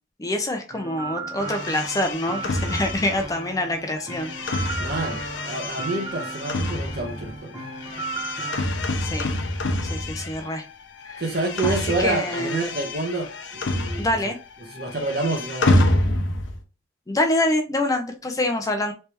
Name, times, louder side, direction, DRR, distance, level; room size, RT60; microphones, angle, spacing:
voice 1, 0.2-4.7 9.0-9.3 9.8-10.6 11.1-11.2 11.6-12.6 14.0-14.4 17.1-18.9, left 1 dB, 20° left, 0.5 m, -26 dB
sound 1, 0.7-8.6, right 4 dB, 20° right, 0.8 m, -35 dB
sound 2, 1.4-10.7 11.0-14.4 14.7-16.6, left 1 dB, 70° left, 0.6 m, -27 dB
voice 2, 4.8-7.5 11.2-14.2 14.6-15.9, right 2 dB, 55° right, 1.0 m, -28 dB
3.3 x 3.2 x 2.9 m
head